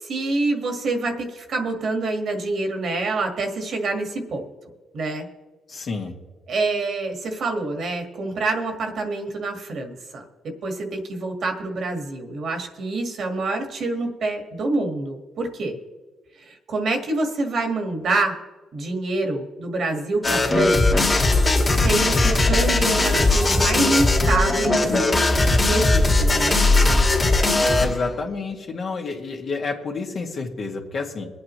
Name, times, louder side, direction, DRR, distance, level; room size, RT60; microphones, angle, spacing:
voice 1, 0.0-4.5 4.9-5.3 6.5-15.8 16.4-18.4 18.7-21.1 21.7-24.8 25.6-26.6, right 2 dB, 60° right, 4 dB, 1.8 m, -26 dB
voice 2, 5.7-6.1 27.8-31.3, left 4 dB, 50° left, 1 dB, 2.0 m, -29 dB
sound 1, 20.2-28.1, left 2 dB, 25° left, 2.2 m, -19 dB
22.5 x 8.5 x 3.1 m, 1.3 s
cardioid pair, 90°, 0 cm